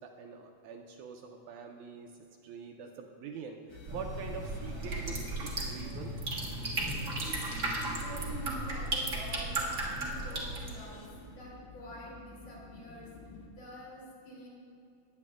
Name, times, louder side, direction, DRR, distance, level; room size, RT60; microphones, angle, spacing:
voice 1, 0.0-6.2, right 5 dB, 80° right, 3 dB, 1.9 m, -45 dB
sound 1, 3.7-13.5, left 4 dB, 85° left, 2.7 m, -50 dB
sound 2, 3.9-10.7, right 2 dB, 60° right, 0.8 m, -35 dB
voice 2, 7.7-13.1 13.4-14.5, equal, 60° left, -6 dB, 4.2 m, -46 dB
19.5 x 8.7 x 2.4 m, 2.6 s
omnidirectional pair, 3.8 m